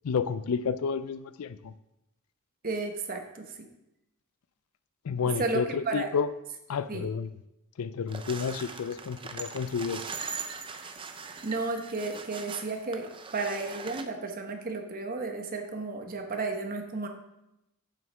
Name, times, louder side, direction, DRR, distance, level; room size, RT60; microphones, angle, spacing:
voice 1, 0.0-1.7 5.0-6.3 6.7-7.3 7.8-10.0, left 6 dB, 90° left, 14 dB, 0.4 m, -30 dB
voice 2, 2.6-3.7 5.4-6.1 6.9-7.1 11.4-17.1, right 3 dB, 40° right, 4 dB, 1.0 m, -33 dB
sound 1, 8.1-14.1, right 5 dB, 25° right, 0.5 m, -40 dB
8.4 x 7.2 x 3.4 m, 0.90 s
head